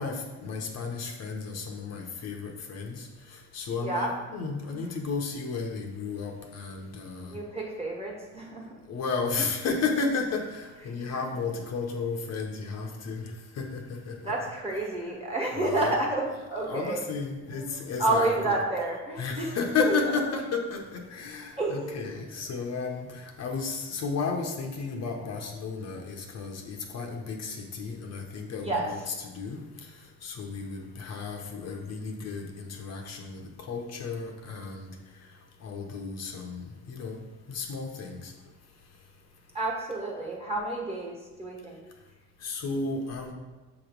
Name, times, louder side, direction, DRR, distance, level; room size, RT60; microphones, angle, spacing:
voice 1, 0.0-7.4 8.9-14.3 15.6-16.0 16.5-18.6 19.2-37.2 37.5-38.3 42.4-43.3, left 4 dB, 55° left, 2 dB, 0.9 m, -33 dB
voice 2, 3.8-4.1 4.7-4.8 7.3-8.7 10.9-11.0 14.2-17.0 17.6-17.7 18.0-19.6 19.9-20.0 21.6-22.1 28.6-28.9 39.5-41.8, right 2 dB, 20° right, -2 dB, 1.4 m, -30 dB
7.1 x 3.0 x 5.1 m, 1.2 s
cardioid pair, 120°, 31 cm